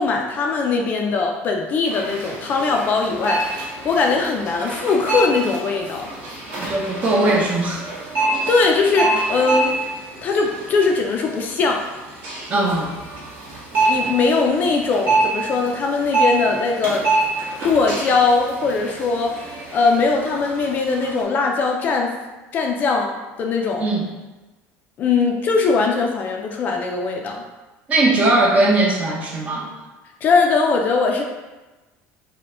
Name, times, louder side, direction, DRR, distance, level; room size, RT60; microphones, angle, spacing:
voice 1, 0.0-6.1 8.5-9.7 10.2-11.8 13.9-17.0 17.6-22.1 22.5-23.8 25.0-27.4 30.2-31.2, left 4 dB, 35° left, 2 dB, 0.4 m, -20 dB
sound 1, 1.8-21.2, right 2 dB, 45° right, 1.3 m, -26 dB
voice 2, 6.6-7.8 12.5-12.9 23.8-24.1 27.9-29.7, right 2 dB, 25° right, -1 dB, 0.6 m, -19 dB
4.4 x 2.1 x 3.6 m, 1.1 s
cardioid pair, 160°, 5 cm